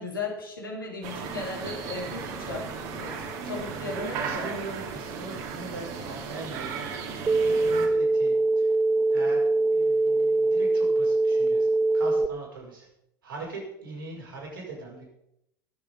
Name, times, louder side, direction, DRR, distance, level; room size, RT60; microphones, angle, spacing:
voice 1, 0.0-3.1 3.4-4.4, left 3 dB, 85° left, -2 dB, 3.2 m, -36 dB
sound 1, 1.0-7.9, right 6 dB, 60° right, 2.6 m, -36 dB
voice 2, 3.8-8.7 9.1-11.7 11.9-12.9 13.2-15.1, right 3 dB, 80° right, -2 dB, 5.6 m, -41 dB
sound 2, 7.3-12.3, right 2 dB, 15° right, 0.4 m, -23 dB
20.0 x 7.1 x 5.4 m, 0.80 s
figure-of-eight pair, 75°, 11 cm